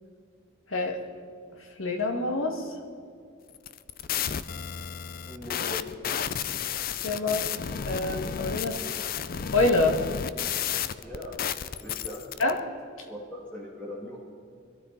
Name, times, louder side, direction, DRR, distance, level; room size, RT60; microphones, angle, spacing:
voice 1, 1.8-2.6 7.0-7.5 7.9-8.8 9.5-10.0 12.4-12.5, left 2 dB, 85° left, 3 dB, 1.9 m, -26 dB
sound 1, 3.5-12.5, left 8 dB, 45° left, 0.4 m, -32 dB
voice 2, 5.3-6.0 11.0-12.3 13.1-14.2, left 1 dB, 5° left, -5 dB, 2.0 m, -40 dB
22.5 x 13.5 x 4.1 m, 2.4 s
head